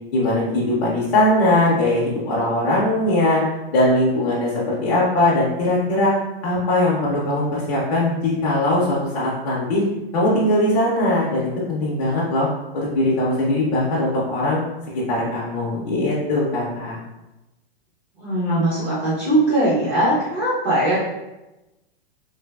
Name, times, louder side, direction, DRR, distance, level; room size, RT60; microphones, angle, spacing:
voice 1, 0.1-3.4 3.7-6.1 6.4-9.8 10.1-12.5 12.7-14.6 14.9-17.0, left 1 dB, 35° left, -7 dB, 0.5 m, -20 dB
voice 2, 18.2-21.0, right 1 dB, 20° right, -10 dB, 0.4 m, -20 dB
3.2 x 2.2 x 2.2 m, 0.99 s
supercardioid pair, 175°, 31 cm